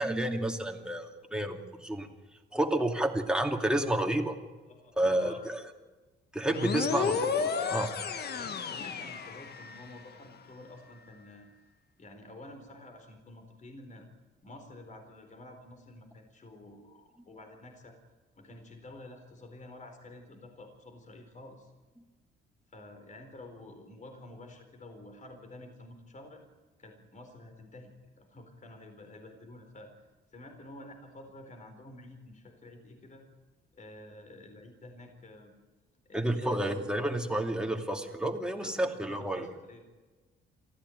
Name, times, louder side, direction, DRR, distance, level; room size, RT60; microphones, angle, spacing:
voice 1, 0.0-2.1 2.5-4.3 5.0-5.6 6.3-7.1 7.7-7.9 8.4-8.5 36.1-39.5, right 1 dB, 5° right, 2 dB, 2.6 m, -30 dB
voice 2, 4.7-5.5 6.9-7.1 7.6-8.0 8.3-11.5 12.0-14.1 14.4-18.0 18.4-21.7 22.7-26.4 26.8-29.9 30.3-33.2 33.7-35.5 36.0-36.8 38.6-39.8, left 2 dB, 40° left, 5 dB, 4.2 m, -50 dB
sound 1, 6.5-10.0, left 6 dB, 55° left, 1.6 m, -32 dB
24.0 x 15.0 x 9.3 m, 1.3 s
cardioid pair, 90°, 20 cm